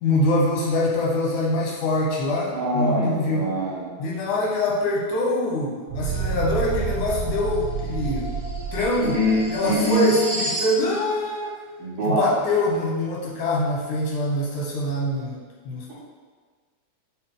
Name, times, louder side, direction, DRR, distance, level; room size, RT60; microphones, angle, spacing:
voice 1, 0.0-3.6 4.0-8.3 8.7-9.2 9.5-11.5 12.0-15.4 15.7-15.9, left 1 dB, 90° left, -4 dB, 2.5 m, -24 dB
voice 2, 2.5-3.9 9.0-10.1 11.8-12.4, left 1 dB, 80° right, -9 dB, 1.1 m, -23 dB
sound 1, 5.9-10.7, right 4 dB, 35° right, 1.4 m, -29 dB
6.3 x 2.2 x 3.7 m, 1.5 s
omnidirectional pair, 3.3 m